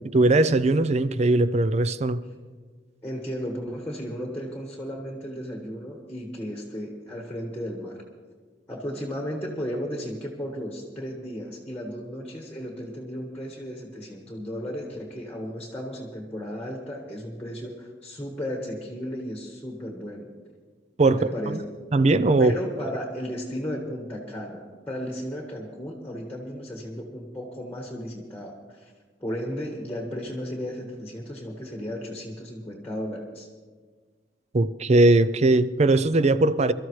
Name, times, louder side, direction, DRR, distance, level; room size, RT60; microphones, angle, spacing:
voice 1, 0.1-2.2 21.0-21.2 21.5-21.6 21.9-22.5 34.5-36.7, right 2 dB, 35° right, 15 dB, 0.5 m, -20 dB
voice 2, 3.0-8.0 8.7-20.3 21.1-21.6 22.4-28.9 29.2-33.5, equal, 10° left, 1 dB, 1.6 m, -34 dB
24.0 x 13.0 x 3.2 m, 1.5 s
head